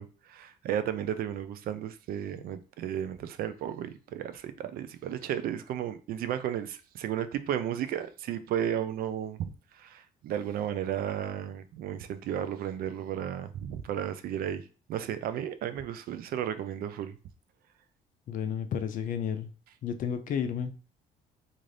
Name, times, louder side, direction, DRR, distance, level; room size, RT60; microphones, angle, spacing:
voice 1, 0.0-14.6 14.9-17.2, right 10 dB, 60° right, 0.4 m, -34 dB
voice 2, 18.3-19.5 19.8-20.7, left 8 dB, 50° left, 0.4 m, -32 dB
2.5 x 2.5 x 3.2 m
cardioid pair, 110°, 17 cm